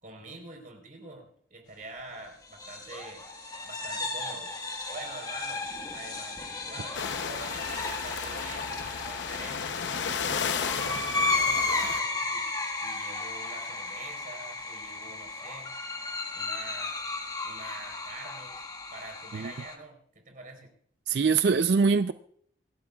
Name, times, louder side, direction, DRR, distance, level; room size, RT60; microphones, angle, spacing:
voice 1, 0.0-3.3 3.6-4.5 4.9-5.6 5.9-9.8 10.3-12.4 12.7-15.7 16.3-16.9 17.4-18.6 18.9-20.0 20.2-20.7, right 2 dB, 45° right, 4.0 m, -46 dB
sound 1, 2.5-19.8, left 3 dB, 20° left, 1.4 m, -34 dB
sound 2, 6.9-12.0, left 6 dB, 80° left, 0.7 m, -33 dB
voice 2, 21.1-22.1, right 5 dB, 65° right, 0.4 m, -23 dB
27.0 x 12.0 x 2.3 m
head